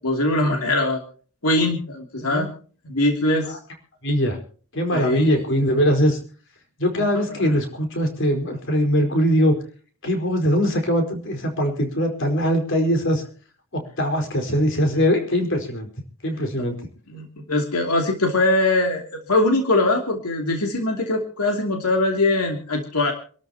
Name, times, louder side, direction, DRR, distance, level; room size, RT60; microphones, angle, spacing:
voice 1, 0.0-1.0 1.4-2.5 2.8-3.6 4.9-5.3 7.0-7.4 17.1-23.1, left 2 dB, 85° left, 2 dB, 2.8 m, -22 dB
voice 2, 2.2-2.5 4.0-4.4 4.7-6.2 6.8-9.6 10.0-13.2 13.7-15.9 16.2-16.8, equal, 55° left, 4 dB, 4.7 m, -21 dB
27.5 x 13.0 x 2.9 m, 0.41 s
head